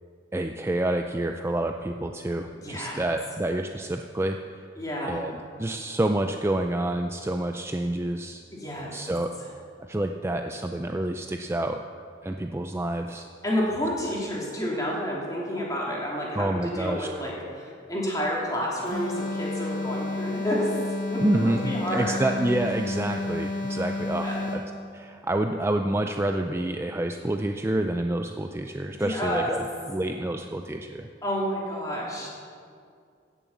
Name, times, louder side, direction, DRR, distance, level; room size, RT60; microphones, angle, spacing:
voice 1, 0.3-4.4 5.0-8.4 8.9-9.3 9.8-11.8 12.2-13.3 16.4-17.1 21.2-24.6 24.9-29.6 29.9-31.1, right 1 dB, 15° right, 5 dB, 0.4 m, -28 dB
voice 2, 2.5-3.0 4.8-5.2 8.5-8.9 13.4-20.8 21.1-22.2 24.2-24.4 28.9-29.6 31.2-32.4, equal, 20° left, -4 dB, 3.0 m, -30 dB
sound 1, 18.9-24.8, left 2 dB, 85° left, 3.1 m, -31 dB
16.5 x 7.0 x 7.3 m, 2.3 s
head